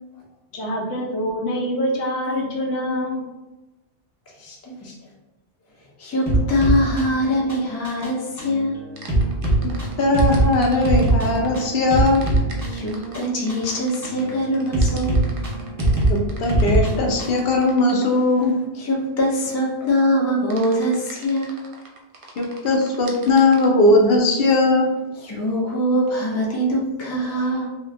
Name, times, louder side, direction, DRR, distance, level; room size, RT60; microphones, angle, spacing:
voice 1, 0.5-3.2, equal, 85° left, -1 dB, 1.1 m, -25 dB
voice 2, 4.3-4.9 6.0-8.8 12.7-15.2 18.8-21.5 25.2-27.7, equal, 20° left, -3 dB, 0.4 m, -23 dB
sound 1, 6.3-17.5, right 1 dB, 15° right, 0.9 m, -23 dB
sound 2, 9.0-11.6 12.0-18.2 20.5-23.7, right 3 dB, 60° right, 0.7 m, -42 dB
voice 3, 9.6-12.2 16.1-18.5 22.4-24.9, left 2 dB, 60° left, 1 dB, 0.8 m, -19 dB
3.0 x 2.7 x 2.5 m, 1.0 s
omnidirectional pair, 1.2 m